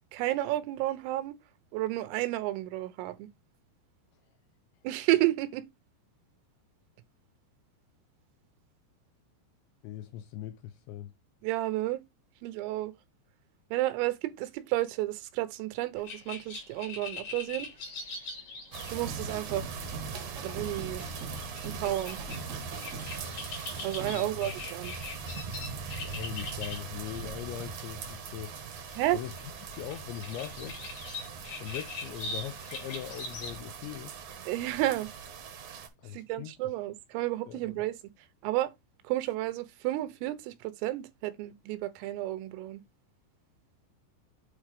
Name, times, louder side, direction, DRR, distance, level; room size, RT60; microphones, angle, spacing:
voice 1, 0.1-1.4 1.7-3.3 4.9-5.6 11.4-12.0 12.4-12.9 13.7-17.7 18.9-19.9 20.4-21.1 21.6-22.2 23.8-24.9 29.0-29.2 34.5-35.1 36.1-38.0 38.4-38.7 39.1-42.8, right 16 dB, 85° right, 3.6 m, -31 dB
voice 2, 9.8-11.1 24.1-24.3 26.0-29.3 29.6-30.9 31.6-34.2 36.0-36.5 37.5-37.6, left 12 dB, 85° left, 2.6 m, -41 dB
sound 1, 16.0-26.8 27.2-27.3 27.5-33.6, left 3 dB, 50° left, 3.5 m, -43 dB
sound 2, 18.7-35.9, right 5 dB, 65° right, 1.9 m, -41 dB
sound 3, 19.0-24.1, right 3 dB, 45° right, 1.3 m, -43 dB
8.7 x 3.5 x 4.9 m
omnidirectional pair, 5.8 m